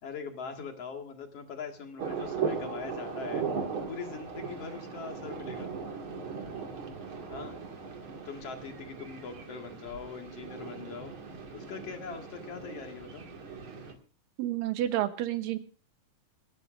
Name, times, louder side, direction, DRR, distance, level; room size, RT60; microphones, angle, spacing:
voice 1, 0.0-3.5 3.9-5.7 7.3-7.6 8.2-11.1 11.5-13.3, left 6 dB, 50° left, 3 dB, 2.7 m, -42 dB
sound 1, 2.0-13.9, right 5 dB, 40° right, 2.5 m, -38 dB
voice 2, 14.4-15.6, right 13 dB, 80° right, 10 dB, 2.6 m, -30 dB
27.0 x 12.5 x 2.6 m, 0.38 s
omnidirectional pair, 4.1 m